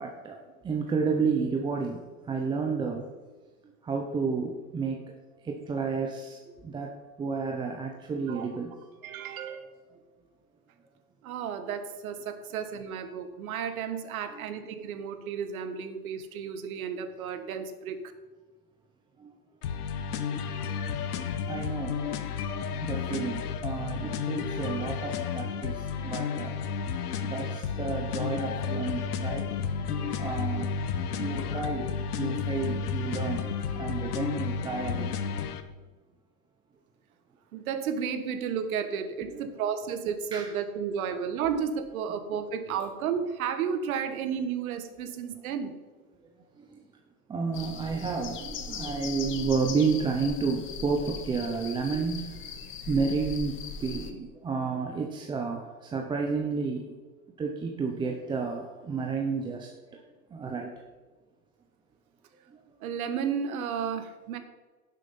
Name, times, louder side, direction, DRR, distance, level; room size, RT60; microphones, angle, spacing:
voice 1, 0.0-3.1 3.6-5.1 5.4-8.9 9.9-10.0 14.3-14.5 19.2-19.3 19.7-19.8 20.7-20.8 21.4-22.0 22.8-26.6 27.2-29.5 30.2-30.7 31.1-33.5 33.7-35.2 39.3-39.4 40.3-40.5 46.6-46.8 47.3-52.4 52.9-56.9 57.4-60.0 60.3-60.7 62.5-62.6, right 5 dB, 10° right, 2 dB, 0.6 m, -31 dB
voice 2, 9.0-9.6 11.2-18.0 37.5-45.7 62.8-64.4, right 7 dB, 70° right, 9 dB, 1.5 m, -32 dB
sound 1, 19.6-35.6, left 6 dB, 85° left, 1.2 m, -32 dB
sound 2, 47.5-54.1, left 6 dB, 25° left, 1.1 m, -39 dB
11.5 x 7.4 x 5.4 m, 1.3 s
supercardioid pair, 135°, 44 cm